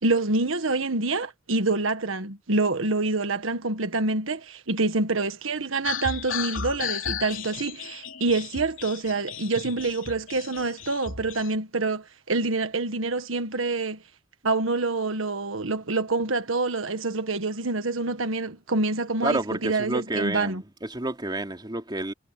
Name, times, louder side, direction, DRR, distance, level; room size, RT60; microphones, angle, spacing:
voice 1, 0.0-14.0 14.4-20.6, right 3 dB, 85° right, 1.6 m, -26 dB
sound 1, 5.8-11.5, left 7 dB, 75° left, 3.2 m, -35 dB
voice 2, 19.2-22.1, right 2 dB, 20° right, 3.0 m, -29 dB
head